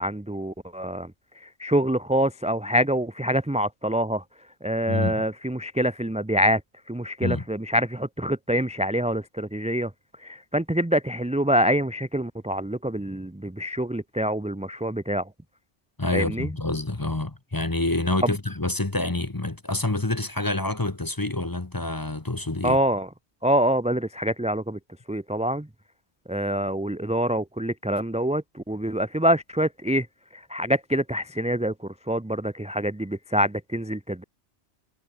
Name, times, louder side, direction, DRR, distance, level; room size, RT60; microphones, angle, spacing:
voice 1, 0.0-4.2 4.6-6.6 6.9-9.9 10.2-15.3 16.1-16.5 18.2-18.3 22.6-23.1 23.4-24.8 25.1-25.7 26.3-30.1 30.3-34.2, equal, 5° right, 0.6 m, -25 dB
voice 2, 4.9-5.2 7.2-7.4 16.0-22.8, left 2 dB, 20° left, 1.1 m, -27 dB
omnidirectional pair, 1.2 m